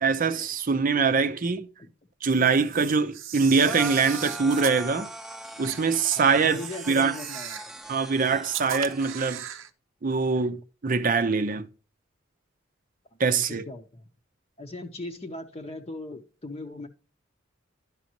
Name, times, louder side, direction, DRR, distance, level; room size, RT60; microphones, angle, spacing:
voice 1, 0.0-1.6 2.2-5.1 5.6-6.6 6.9-7.1 7.9-9.4 10.0-11.7 13.2-13.6, right 5 dB, 45° right, 0.6 m, -23 dB
Camera, 2.2-4.8 5.6-5.8 6.4-7.7 8.5-9.7, right 10 dB, 90° right, 0.7 m, -38 dB
sound 1, 3.6-9.2, right 1 dB, ahead, 0.8 m, -40 dB
voice 2, 6.2-7.6 13.1-14.0 14.6-16.9, left 2 dB, 30° left, 0.8 m, -39 dB
11.5 x 5.2 x 2.9 m
head